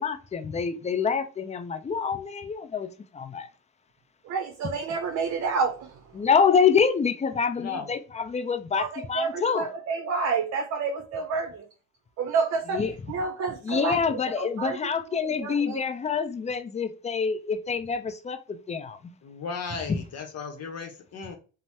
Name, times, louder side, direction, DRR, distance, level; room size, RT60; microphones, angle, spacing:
voice 1, 0.0-3.5 6.2-9.6 12.7-12.9 13.6-19.1, left 6 dB, 25° left, 0.4 m, -26 dB
voice 2, 4.2-6.0 8.7-11.7 12.2-15.9, right 5 dB, 60° right, 0.6 m, -29 dB
voice 3, 7.6-7.9 19.2-21.4, left 5 dB, 55° left, 0.8 m, -35 dB
2.7 x 2.0 x 3.3 m
cardioid pair, 90°, 30 cm